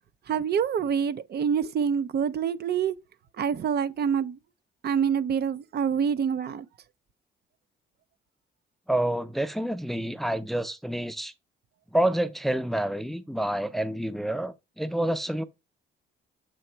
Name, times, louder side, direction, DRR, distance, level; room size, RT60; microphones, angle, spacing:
voice 1, 0.3-2.9 3.4-4.4 4.8-6.7, right 7 dB, 55° right, 0.5 m, -26 dB
voice 2, 8.9-11.3 11.9-15.4, right 1 dB, ahead, 0.5 m, -28 dB
7.7 x 3.0 x 4.4 m
cardioid pair, 90°, 20 cm